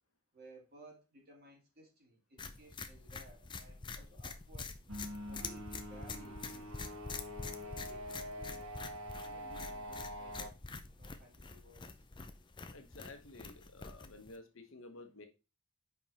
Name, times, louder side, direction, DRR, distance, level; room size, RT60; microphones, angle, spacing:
voice 1, 0.3-4.8 5.2-6.8 7.6-8.7 9.2-10.6 10.9-12.1, right 1 dB, 45° right, -1 dB, 2.5 m, -58 dB
sound 1, 2.4-14.4, left 4 dB, 20° left, 0.5 m, -46 dB
sound 2, 4.9-10.5, equal, 80° right, 1.1 m, -45 dB
voice 2, 12.7-15.3, left 2 dB, 60° left, 6 dB, 1.1 m, -52 dB
5.3 x 5.0 x 4.2 m, 0.29 s
head